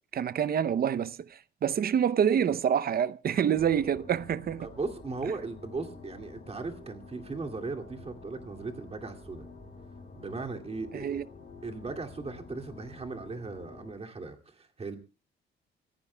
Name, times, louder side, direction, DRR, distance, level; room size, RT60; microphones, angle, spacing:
voice 1, 0.1-4.7 10.9-11.2, right 8 dB, 50° right, 0.7 m, -27 dB
sound 1, 3.5-13.9, left 3 dB, 40° left, 6.6 m, -49 dB
voice 2, 4.6-9.5 10.1-11.2 11.6-15.0, right 3 dB, 30° right, 2.5 m, -37 dB
29.0 x 14.5 x 2.3 m
cardioid pair, 90°, 20 cm